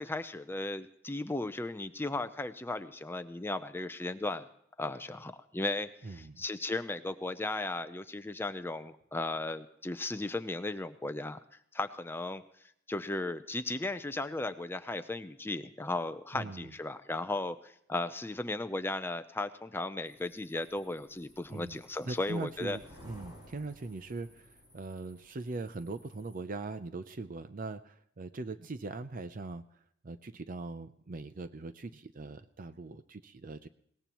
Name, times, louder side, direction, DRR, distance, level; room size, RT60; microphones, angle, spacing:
voice 1, 0.0-4.5 4.8-11.4 11.7-12.4 12.9-22.8, left 2 dB, 10° left, 10 dB, 0.5 m, -36 dB
voice 2, 6.0-6.4 16.3-16.7 21.5-21.8 22.1-33.7, right 3 dB, 45° right, 11 dB, 0.6 m, -41 dB
sound 1, 20.1-26.4, equal, 20° right, 5.4 m, -57 dB
21.5 x 18.5 x 3.0 m, 0.70 s
head